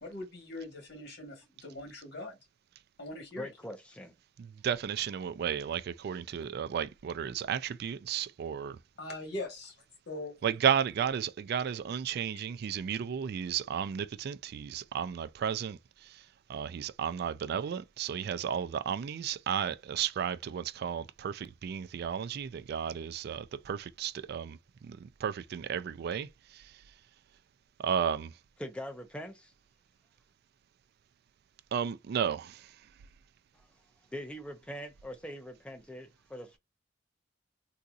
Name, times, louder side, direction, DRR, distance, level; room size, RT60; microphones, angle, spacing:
voice 1, 0.0-2.4 3.0-3.5 9.0-9.8 10.1-10.3, left 2 dB, 60° left, 1.3 m, -41 dB
voice 2, 3.4-4.1 28.6-29.5 33.5-33.7 34.1-36.6, equal, 5° left, 0.5 m, -42 dB
voice 3, 4.4-8.8 10.4-26.8 27.8-28.4 31.7-32.9, right 8 dB, 55° right, 0.3 m, -33 dB
3.8 x 2.7 x 2.3 m
head